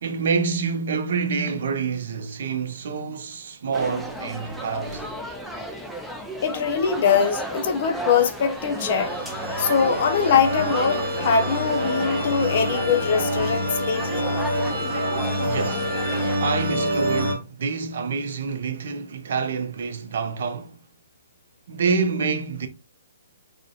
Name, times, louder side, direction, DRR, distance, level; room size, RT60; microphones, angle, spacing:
voice 1, 0.0-5.1 15.4-20.8 21.7-22.7, right 5 dB, 60° right, 0.5 m, -27 dB
sound 1, 3.7-16.4, right 1 dB, ahead, 0.3 m, -33 dB
voice 2, 6.4-9.1 9.6-14.3, left 6 dB, 50° left, 0.5 m, -22 dB
sound 2, 8.5-17.3, equal, 35° right, 1.2 m, -27 dB
2.4 x 2.1 x 2.6 m
hypercardioid pair, 145°, 0 cm